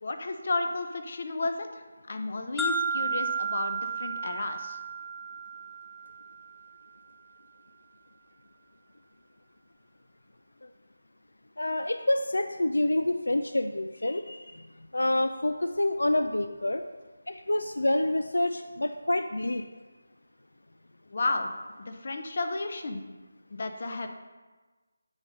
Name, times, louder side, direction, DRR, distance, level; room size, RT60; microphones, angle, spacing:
voice 1, 0.0-4.8 21.1-21.5 21.8-23.0 23.5-24.1, left 3 dB, 50° left, 6 dB, 0.7 m, -32 dB
sound 1, 2.6-6.6, right 4 dB, 5° left, 0.4 m, -33 dB
voice 2, 11.6-14.4 14.9-16.8 17.3-19.6, left 1 dB, 85° left, 8 dB, 0.4 m, -27 dB
8.2 x 4.1 x 5.1 m, 1.3 s
figure-of-eight pair, 165°, 0 cm